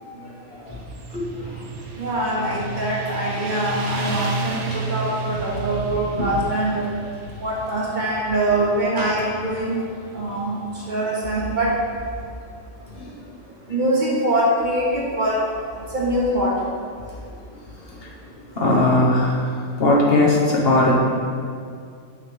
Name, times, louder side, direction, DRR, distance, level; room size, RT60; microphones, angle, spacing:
Motorcycle, 0.7-11.8, right 3 dB, 70° right, 1.0 m, -33 dB
voice 1, 1.1-1.6 6.2-6.3 13.0-13.1 18.0-18.1 18.6-19.4 19.8-20.9, left 2 dB, 55° left, -4 dB, 1.1 m, -19 dB
voice 2, 2.0-6.8 7.4-9.8 10.1-10.6 10.9-11.7 13.7-15.4 15.9-16.5, right 1 dB, 40° right, -5 dB, 1.1 m, -23 dB
6.2 x 3.1 x 5.6 m, 2.3 s
omnidirectional pair, 1.3 m